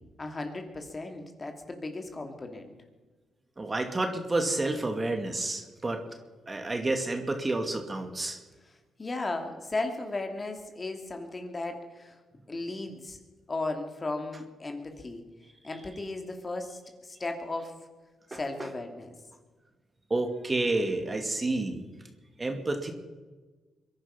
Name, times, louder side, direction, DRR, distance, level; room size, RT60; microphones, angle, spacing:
voice 1, 0.2-2.7 8.6-8.7 9.0-12.2 12.5-13.2 13.5-15.2 15.6-17.7 18.3-19.1, left 2 dB, 30° left, 5 dB, 2.5 m, -35 dB
voice 2, 3.6-6.0 6.5-8.4 18.3-18.4 20.1-21.8 22.4-22.9, right 2 dB, 25° right, 5 dB, 2.3 m, -29 dB
23.0 x 11.0 x 5.7 m, 1.3 s
cardioid pair, 70°, 0 cm